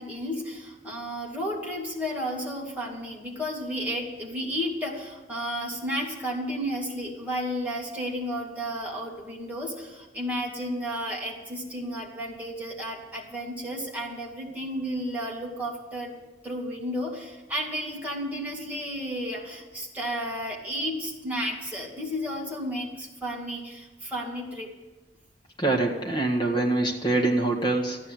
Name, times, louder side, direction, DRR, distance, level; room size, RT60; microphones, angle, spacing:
voice 1, 0.0-16.1 16.4-24.7, equal, 10° right, -3 dB, 2.4 m, -32 dB
voice 2, 25.6-28.0, right 2 dB, 25° left, 1 dB, 1.8 m, -24 dB
14.0 x 10.0 x 7.8 m, 1.2 s
head